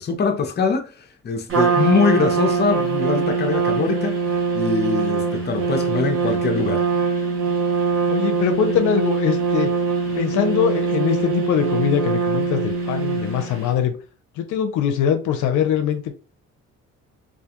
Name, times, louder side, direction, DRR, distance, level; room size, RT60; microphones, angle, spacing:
voice 1, 0.0-6.8, left 5 dB, 35° left, 0.6 m, -23 dB
Trumpet, 1.5-13.6, right 5 dB, 45° right, 1.0 m, -22 dB
voice 2, 8.1-9.7 10.1-14.0 14.4-16.1, left 9 dB, 80° left, 0.5 m, -22 dB
2.4 x 2.2 x 2.8 m
cardioid pair, 90°, 30 cm